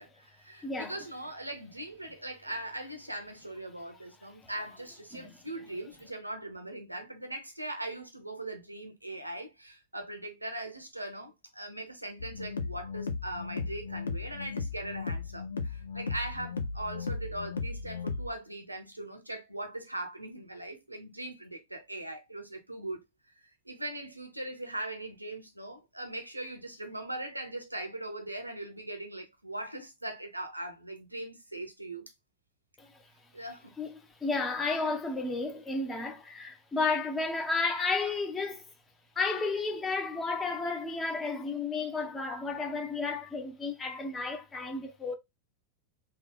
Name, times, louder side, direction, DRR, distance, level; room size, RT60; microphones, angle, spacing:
voice 1, 0.0-23.0 23.4-32.1 33.3-33.7, right 1 dB, 85° right, 0.8 m, -40 dB
voice 2, 0.6-0.9 4.4-4.5 5.1-5.3 32.8-33.1 33.8-38.7 39.1-45.1, left 3 dB, 15° left, 1.0 m, -32 dB
sound 1, 12.2-18.3, left 4 dB, 70° left, 0.5 m, -36 dB
3.6 x 2.3 x 3.5 m
figure-of-eight pair, 90°, 0 cm